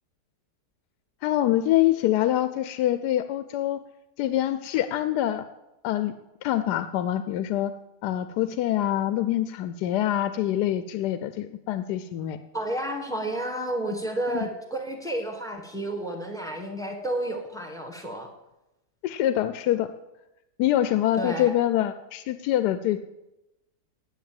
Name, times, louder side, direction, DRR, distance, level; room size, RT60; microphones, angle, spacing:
voice 1, 1.2-3.8 4.2-5.4 5.8-6.1 6.4-7.7 8.0-12.4 14.3-14.5 19.0-19.9 20.6-23.0, left 13 dB, 90° left, 11 dB, 1.2 m, -25 dB
voice 2, 12.5-18.3 21.2-21.5, right 1 dB, ahead, 3 dB, 1.4 m, -31 dB
10.0 x 8.0 x 7.7 m, 0.95 s
omnidirectional pair, 1.7 m